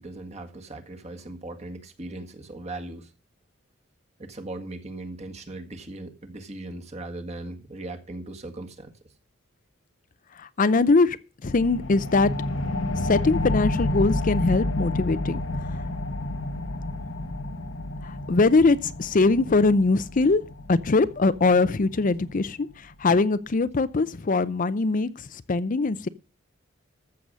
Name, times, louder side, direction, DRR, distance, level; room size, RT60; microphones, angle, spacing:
voice 1, 0.0-3.1 4.2-8.9, right 2 dB, 35° right, 1.9 m, -38 dB
voice 2, 10.4-11.2 11.4-12.3 13.0-15.4 18.0-20.4 20.7-26.1, left 3 dB, 45° left, 0.5 m, -22 dB
sound 1, 11.5-22.5, left 2 dB, 75° left, 1.2 m, -30 dB
14.0 x 7.0 x 6.2 m
head